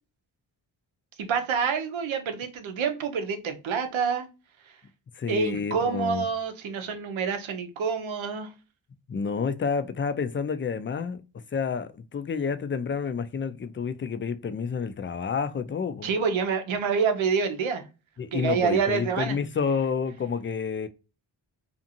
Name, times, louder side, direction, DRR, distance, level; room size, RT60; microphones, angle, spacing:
voice 1, 1.2-4.3 4.7-4.8 5.3-8.5 16.0-17.8 18.3-19.4, right 6 dB, 85° right, 0.7 m, -27 dB
voice 2, 5.1-6.2 9.1-11.2 11.5-16.1 18.2-20.9, left 6 dB, 25° left, 0.4 m, -29 dB
2.5 x 2.5 x 2.7 m
cardioid pair, 45°, 46 cm